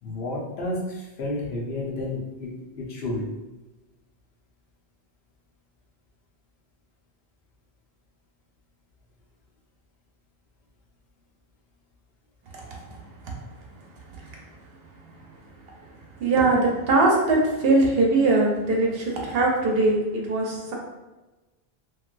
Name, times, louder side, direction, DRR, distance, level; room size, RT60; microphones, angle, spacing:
voice 1, 0.0-3.3, left 2 dB, 80° left, -3 dB, 1.0 m, -31 dB
voice 2, 16.2-20.7, right 2 dB, 70° right, -1 dB, 0.9 m, -21 dB
3.0 x 2.6 x 2.5 m, 1.1 s
omnidirectional pair, 1.1 m